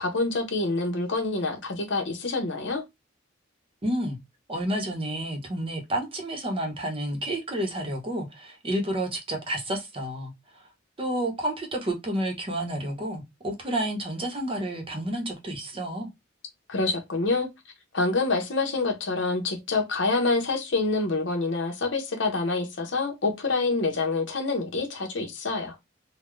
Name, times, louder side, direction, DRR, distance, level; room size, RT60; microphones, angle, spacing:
voice 1, 0.0-2.8 16.7-17.5 17.9-25.7, left 3 dB, 65° left, 1.0 m, -26 dB
voice 2, 3.8-4.2 4.5-10.6 11.0-16.1, right 1 dB, 30° right, 0.9 m, -30 dB
3.8 x 2.3 x 3.1 m
head